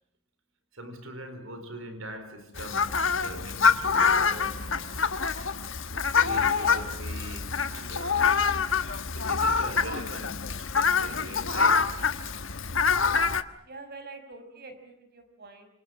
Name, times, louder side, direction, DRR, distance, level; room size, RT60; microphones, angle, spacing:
voice 1, 0.7-5.0 5.9-8.4 9.1-12.2, right 1 dB, 75° right, 4.3 m, -42 dB
Fowl, 2.6-13.4, left 5 dB, 70° left, 1.4 m, -26 dB
voice 2, 6.4-6.9 13.6-15.7, right 3 dB, 50° right, 5.7 m, -45 dB
27.5 x 27.5 x 7.6 m
head